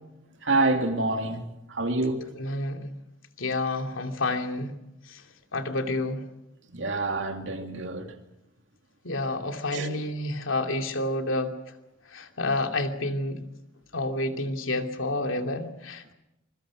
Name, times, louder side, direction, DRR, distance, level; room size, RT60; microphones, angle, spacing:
voice 1, 0.4-1.4 1.7-2.2 6.7-8.1 9.7-10.0, right 2 dB, 65° right, 2.9 m, -27 dB
voice 2, 2.4-2.9 3.4-4.7 5.1-5.2 5.5-6.2 9.0-11.6 12.1-13.4 13.9-16.1, left 2 dB, 80° left, 2.8 m, -29 dB
27.0 x 22.0 x 6.3 m
head